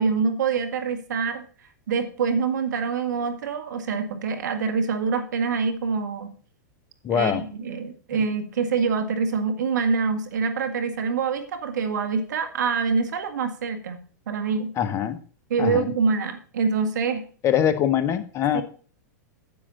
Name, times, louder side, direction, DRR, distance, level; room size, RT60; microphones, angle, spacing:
voice 1, 0.0-1.4 1.9-6.3 7.1-14.7 15.5-17.2 18.5-18.6, right 5 dB, 75° right, 9 dB, 1.7 m, -25 dB
voice 2, 7.0-7.4 14.8-15.2 15.6-15.9 17.4-18.6, left 9 dB, 30° left, 10 dB, 1.2 m, -23 dB
10.5 x 7.8 x 3.9 m, 0.40 s
hypercardioid pair, 110°, 10 cm